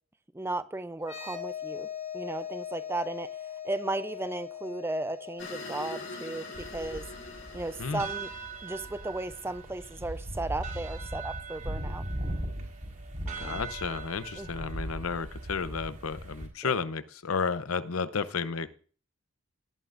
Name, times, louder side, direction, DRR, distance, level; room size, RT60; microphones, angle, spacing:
voice 1, 0.3-1.9 2.1-3.3 3.6-7.0 7.5-8.3 8.6-12.0 13.3-13.6 14.4-14.5 16.6-16.7, right 2 dB, 10° right, 0.4 m, -35 dB
sound 1, 1.0-8.5, left 9 dB, 30° left, 1.4 m, -41 dB
sound 2, 5.4-10.0, left 2 dB, 70° left, 4.1 m, -44 dB
sound 3, 6.5-16.5, right 1 dB, 45° right, 4.2 m, -38 dB
voice 2, 13.4-18.7, left 5 dB, 90° left, 0.7 m, -32 dB
16.5 x 11.0 x 2.5 m
head